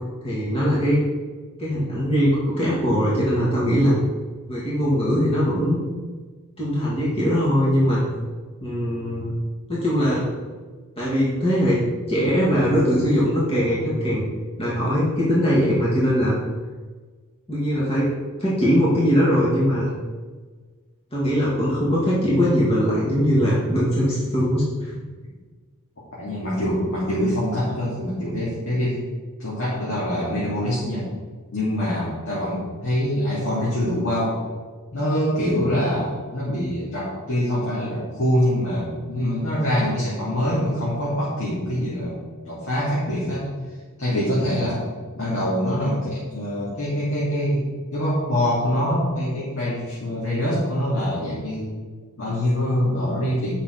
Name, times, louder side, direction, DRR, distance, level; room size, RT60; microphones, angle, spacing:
voice 1, 0.2-1.0 1.6-3.9 4.5-5.8 6.6-8.1 8.6-9.3 9.7-10.3 11.0-14.2 14.6-16.4 17.5-18.1 18.4-19.9 21.1-24.9, equal, 25° left, -7 dB, 1.9 m, -21 dB
voice 2, 26.1-29.0 29.4-31.1 31.5-34.4 34.9-42.2 42.4-43.5 44.0-44.9 45.1-47.6 47.9-51.7 52.2-53.5, equal, 60° left, -8 dB, 2.6 m, -24 dB
8.8 x 5.8 x 5.3 m, 1.4 s
head